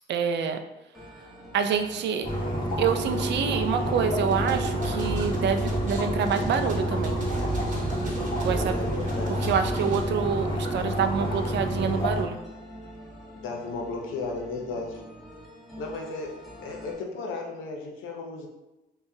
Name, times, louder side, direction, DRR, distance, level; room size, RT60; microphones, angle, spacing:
voice 1, 0.1-0.6 1.5-2.3 2.8-7.2 8.4-8.7 9.4-12.4, right 7 dB, 60° right, 7 dB, 0.4 m, -27 dB
sound 1, 0.9-16.9, equal, ahead, 1.0 m, -46 dB
sound 2, 2.2-12.2, equal, 25° left, 1.1 m, -29 dB
sound 3, 4.3-10.0, right 3 dB, 40° right, 1.0 m, -35 dB
voice 2, 8.5-9.5 13.4-15.0 15.8-18.5, left 3 dB, 80° left, 1 dB, 0.7 m, -35 dB
4.6 x 2.3 x 2.7 m, 0.97 s
cardioid pair, 90°, 20 cm